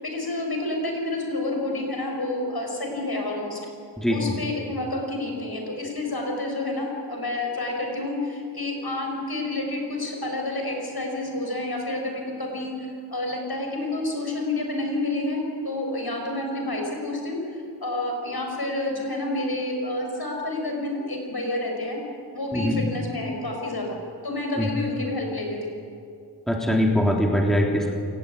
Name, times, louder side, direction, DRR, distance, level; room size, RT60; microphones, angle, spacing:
voice 1, 0.0-3.6 4.1-12.7 13.1-17.4 17.8-22.0 22.3-24.0 24.2-25.7, left 2 dB, 65° left, 1 dB, 6.4 m, -29 dB
voice 2, 26.5-27.9, equal, ahead, 0 dB, 3.3 m, -22 dB
28.5 x 17.0 x 9.5 m, 2.4 s
wide cardioid pair, 60°, 40 cm